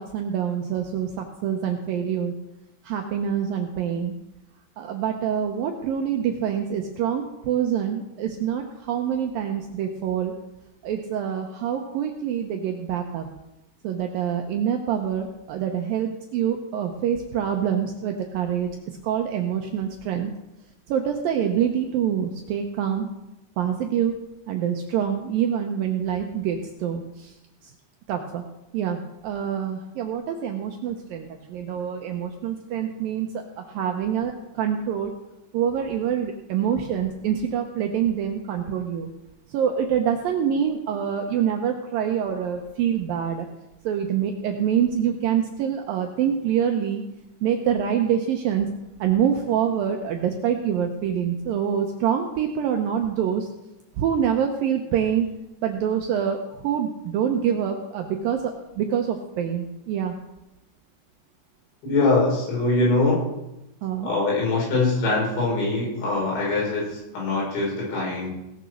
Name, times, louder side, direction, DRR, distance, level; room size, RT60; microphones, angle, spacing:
voice 1, 0.0-2.3 2.8-4.1 4.8-10.3 10.8-13.3 13.8-18.7 19.0-20.3 20.9-23.1 23.6-24.1 24.5-27.3 28.1-28.4 28.7-29.0 29.2-33.3 33.6-35.1 35.5-39.1 39.5-43.5 43.8-47.0 47.4-48.7 49.0-53.5 54.0-55.3 55.6-60.2 63.8-64.1, right 8 dB, 75° right, 4 dB, 2.1 m, -25 dB
voice 2, 61.8-63.2 64.0-68.3, left 3 dB, 90° left, -4 dB, 7.7 m, -23 dB
18.0 x 7.0 x 6.4 m, 0.92 s
omnidirectional pair, 5.1 m